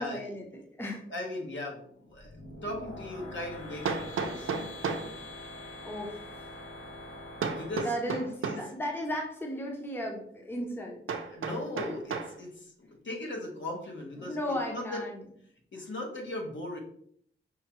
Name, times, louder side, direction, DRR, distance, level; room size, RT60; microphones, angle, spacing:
voice 1, 0.0-1.0 5.8-6.2 7.3-7.4 7.8-11.0 14.2-15.2, equal, 10° left, 0 dB, 0.7 m, -35 dB
voice 2, 1.1-2.3 2.6-5.3 7.5-7.9 8.4-8.6 11.3-14.4 14.7-15.0 15.7-16.8, left 1 dB, 60° left, -1 dB, 1.2 m, -38 dB
sound 1, 2.1-7.8, left 1 dB, 85° left, 1.4 m, -44 dB
Hammer, 2.2-2.3 3.8-5.1 7.4-8.7 11.1-12.4, right 5 dB, 75° right, 0.5 m, -33 dB
5.6 x 2.3 x 2.9 m, 0.64 s
wide cardioid pair, 95°, 21 cm